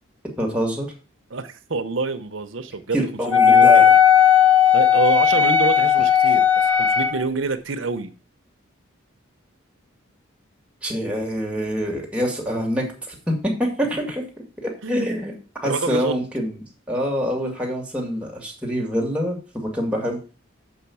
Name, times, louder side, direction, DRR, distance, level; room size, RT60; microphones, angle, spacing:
voice 1, 0.4-0.9 2.9-3.9 10.8-14.2 14.6-15.3 15.6-20.2, equal, 5° right, 2.0 m, -25 dB
voice 2, 1.3-3.0 3.3-3.8 4.7-8.1 14.8-15.1 15.6-16.2, right 4 dB, 70° right, 0.8 m, -26 dB
Wind instrument woodwind instrument, 3.3-7.2, left 8 dB, 10° left, 0.8 m, -15 dB
7.2 x 5.5 x 7.1 m
head